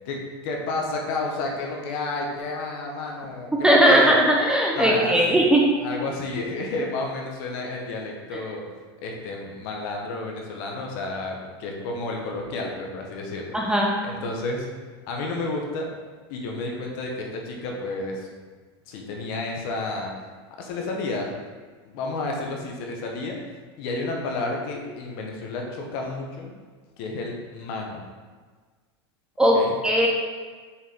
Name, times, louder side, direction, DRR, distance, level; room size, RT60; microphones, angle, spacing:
voice 1, 0.0-4.2 4.8-5.5 5.8-8.6 9.0-13.6 14.0-14.7 15.1-15.9 16.3-18.3 18.9-20.1 20.6-21.3 21.8-23.4 23.8-26.5 27.0-28.0 29.5-29.7, left 2 dB, 55° left, 0 dB, 1.3 m, -31 dB
voice 2, 3.6-5.6 13.5-13.9 29.4-29.6 29.8-30.1, right 1 dB, 5° right, -2 dB, 0.7 m, -18 dB
6.9 x 4.4 x 3.7 m, 1.5 s
supercardioid pair, 140°, 14 cm